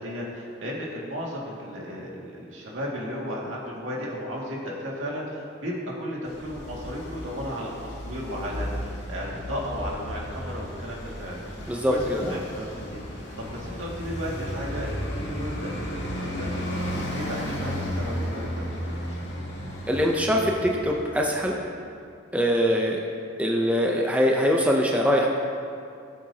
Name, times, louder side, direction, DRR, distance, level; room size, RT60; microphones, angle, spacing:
voice 1, 0.0-15.7 16.0-18.7 19.0-19.5, equal, 75° right, -4 dB, 2.1 m, -35 dB
Traffic noise roadway noise, 6.3-21.7, equal, 60° left, 2.1 m, -34 dB
voice 2, 11.7-12.4 19.9-21.6 22.3-23.0 23.4-25.3, equal, 5° right, -1 dB, 0.6 m, -23 dB
15.5 x 7.6 x 2.8 m, 2.4 s
head